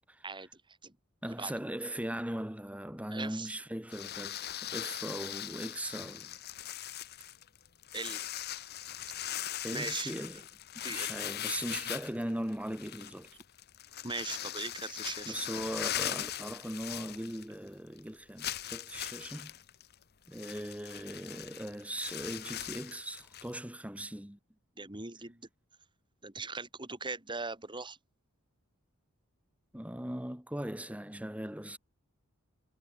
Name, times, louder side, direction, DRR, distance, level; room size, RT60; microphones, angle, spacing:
voice 1, 0.2-0.9 1.3-1.5 3.1-3.5 7.9-8.2 9.7-10.1 10.8-11.1 14.0-15.4 24.8-25.5 26.2-28.0, right 4 dB, 20° right, 3.6 m, -40 dB
voice 2, 1.2-6.4 9.6-10.4 10.7-13.3 15.3-19.6 20.3-24.4 29.7-31.8, right 1 dB, 5° right, 1.7 m, -39 dB
sound 1, 3.9-17.7 18.0-18.1 18.4-23.5, left 12 dB, 50° left, 0.9 m, -40 dB
head